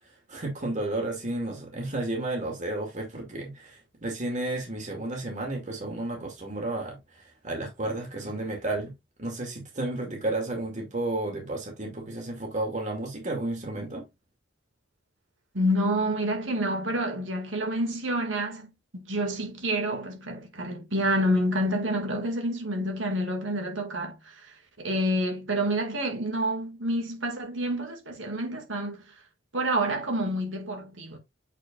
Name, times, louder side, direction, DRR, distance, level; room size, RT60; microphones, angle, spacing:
voice 1, 0.3-8.9 9.2-14.0, right 2 dB, 40° right, 2.4 m, -32 dB
voice 2, 15.5-29.1 29.5-31.2, right 1 dB, 90° right, 2.1 m, -28 dB
8.2 x 4.7 x 2.4 m
head